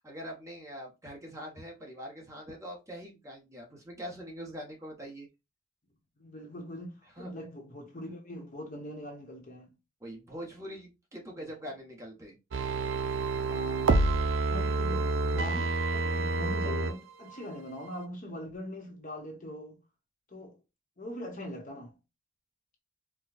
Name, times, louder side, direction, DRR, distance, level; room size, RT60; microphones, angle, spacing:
voice 1, 0.0-5.3 7.2-7.3 10.0-12.4, equal, 15° right, 1.1 m, -43 dB
voice 2, 6.2-9.7 11.4-11.5 13.3-14.0 14.5-19.8 20.3-20.6 21.0-21.9, left 1 dB, 40° left, 1.0 m, -42 dB
sound 1, 12.5-16.9 17.3-17.4, right 3 dB, 75° right, 0.5 m, -28 dB
4.6 x 2.3 x 2.4 m
head